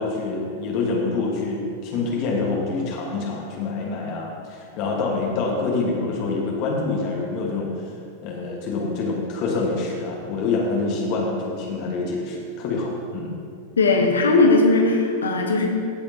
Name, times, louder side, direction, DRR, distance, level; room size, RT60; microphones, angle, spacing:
voice 1, 0.0-7.9 8.2-13.3, left 3 dB, 40° left, -2 dB, 1.5 m, -26 dB
voice 2, 13.8-15.7, left 3 dB, 70° left, 2 dB, 1.2 m, -18 dB
15.5 x 6.8 x 2.9 m, 2.7 s
figure-of-eight pair, 90°, 0 cm